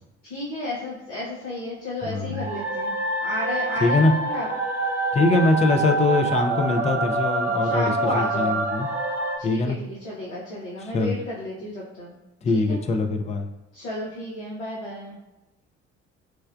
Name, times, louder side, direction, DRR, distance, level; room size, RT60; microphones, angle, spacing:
voice 1, 0.2-2.9 3.2-4.5 7.6-8.6 9.4-12.1 12.5-12.8 13.7-15.2, left 1 dB, 75° left, -6 dB, 0.8 m, -32 dB
voice 2, 2.0-2.4 3.8-4.1 5.1-8.9 9.4-9.8 10.8-11.2 12.4-13.5, left 3 dB, 20° left, 5 dB, 0.4 m, -22 dB
sound 1, 2.3-9.4, right 2 dB, 90° right, 0.6 m, -26 dB
4.5 x 2.1 x 2.3 m, 0.96 s
figure-of-eight pair, 55°, 35 cm